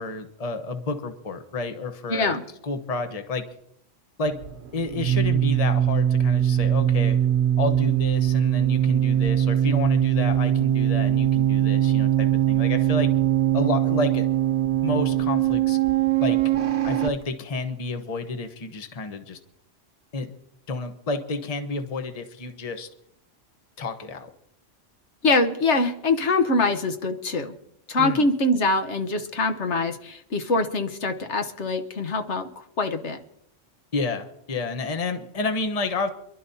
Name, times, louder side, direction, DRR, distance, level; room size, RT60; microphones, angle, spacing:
voice 1, 0.0-2.3 2.6-3.4 4.2-4.4 4.7-7.2 7.6-13.1 13.5-14.3 14.8-15.8 16.2-16.6 16.8-19.4 20.1-20.3 20.7-22.9 23.8-24.3 28.0-28.2 33.9-36.1, left 3 dB, 35° left, 7 dB, 1.0 m, -30 dB
voice 2, 2.1-2.4 25.2-27.5 27.9-33.2, left 2 dB, 70° left, 6 dB, 1.4 m, -24 dB
sound 1, 4.3-17.1, right 11 dB, 65° right, 1.0 m, -21 dB
27.0 x 11.5 x 2.8 m, 0.76 s
omnidirectional pair, 1.3 m